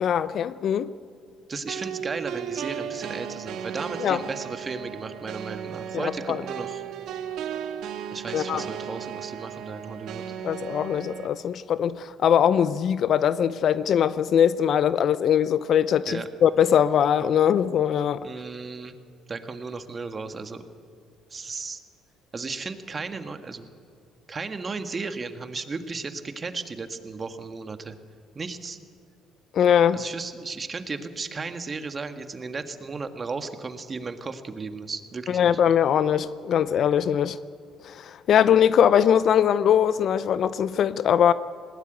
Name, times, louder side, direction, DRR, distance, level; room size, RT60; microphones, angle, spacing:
voice 1, 0.0-0.9 4.0-4.2 5.9-6.4 8.3-8.7 10.4-18.3 29.5-30.0 35.3-37.4 37.8-41.3, left 9 dB, 60° left, 0.6 m, -21 dB
voice 2, 1.5-6.8 8.1-10.2 16.1-16.3 18.2-18.9 19.3-20.6 21.3-21.8 22.3-23.7 24.3-28.0 28.4-28.8 29.9-35.5, right 4 dB, 30° right, 1.7 m, -35 dB
sound 1, 1.7-11.3, right 9 dB, 70° right, 1.4 m, -35 dB
20.0 x 17.5 x 9.1 m
supercardioid pair, 85°, 0 cm